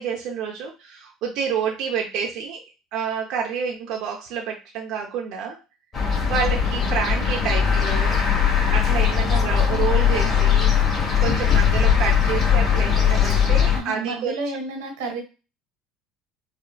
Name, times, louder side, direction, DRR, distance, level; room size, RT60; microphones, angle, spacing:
voice 1, 0.0-2.6 2.9-5.6 6.3-8.1 8.7-14.4, right 7 dB, 65° right, 0 dB, 0.7 m, -28 dB
sound 1, 5.9-13.8, left 7 dB, 35° left, 1.7 m, -20 dB
voice 2, 13.7-15.2, right 3 dB, 85° right, 2 dB, 1.6 m, -30 dB
5.1 x 2.4 x 2.3 m, 0.30 s
hypercardioid pair, 70°, 0 cm